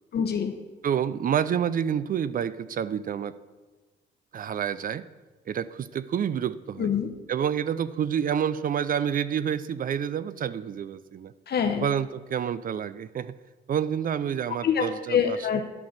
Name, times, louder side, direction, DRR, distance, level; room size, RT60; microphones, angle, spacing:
voice 1, 0.1-0.5 6.8-7.1 11.5-11.9 14.6-15.6, left 7 dB, 55° left, 4 dB, 0.9 m, -25 dB
voice 2, 0.8-3.3 4.3-5.0 5.5-6.9 7.3-11.3 11.8-13.3 13.7-15.4, right 8 dB, 45° right, 16 dB, 0.4 m, -28 dB
10.5 x 3.8 x 7.3 m, 1.3 s
cardioid pair, 90°, 20 cm